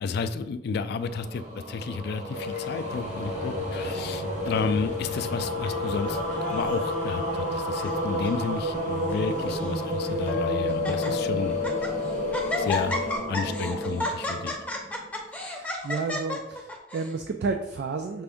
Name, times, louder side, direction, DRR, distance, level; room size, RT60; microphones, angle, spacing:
voice 1, 0.0-11.6 12.6-13.0 13.3-14.6, left 5 dB, 60° left, 11 dB, 0.3 m, -32 dB
sound 1, 0.8-15.2, right 1 dB, 45° right, 0.8 m, -32 dB
sound 2, 2.3-13.2, left 8 dB, 45° left, 0.8 m, -34 dB
Laughter, 6.1-6.9 7.6-8.0 8.2-8.3 9.1-9.7 10.3-10.4 10.7-11.1 11.5-11.9 12.3-17.1, left 2 dB, 10° left, 0.6 m, -32 dB
voice 2, 15.5-18.2, right 4 dB, 65° right, 5 dB, 0.3 m, -31 dB
5.6 x 2.5 x 3.5 m, 0.91 s
head